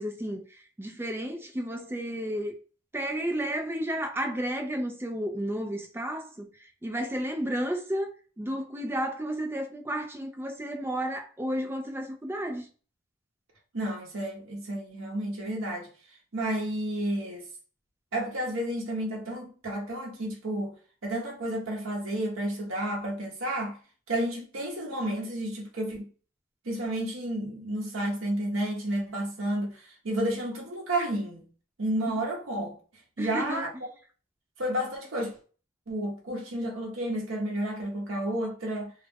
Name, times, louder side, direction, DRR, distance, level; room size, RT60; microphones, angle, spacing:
voice 1, 0.0-2.5 2.9-6.5 6.8-8.1 8.4-12.7 32.1-32.2 33.2-33.6, right 1 dB, 10° right, 0.3 m, -32 dB
voice 2, 13.7-17.5 18.1-20.7 21.0-23.8 24.1-26.1 26.6-31.4 31.8-32.8 33.2-33.7 34.6-35.4 35.9-38.9, right 1 dB, 80° right, 0.7 m, -31 dB
2.3 x 2.0 x 3.2 m
head